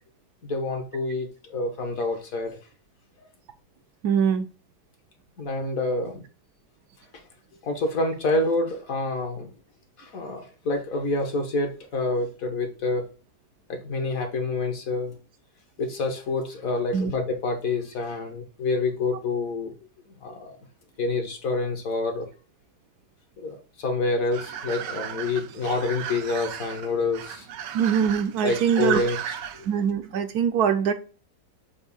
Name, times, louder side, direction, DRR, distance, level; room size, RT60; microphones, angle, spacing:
voice 1, 0.4-2.6 5.4-6.2 7.6-9.5 10.0-13.0 13.7-15.1 15.8-19.7 20.2-20.5 21.0-22.3 23.4-27.5 28.4-29.4, left 3 dB, 55° left, 4 dB, 1.4 m, -27 dB
voice 2, 4.0-4.5 16.9-17.1 27.7-29.3 29.7-30.9, right 7 dB, 70° right, 8 dB, 1.0 m, -23 dB
sound 1, 24.3-29.9, right 9 dB, 90° right, 1.3 m, -36 dB
7.1 x 2.7 x 5.4 m, 0.36 s
omnidirectional pair, 1.9 m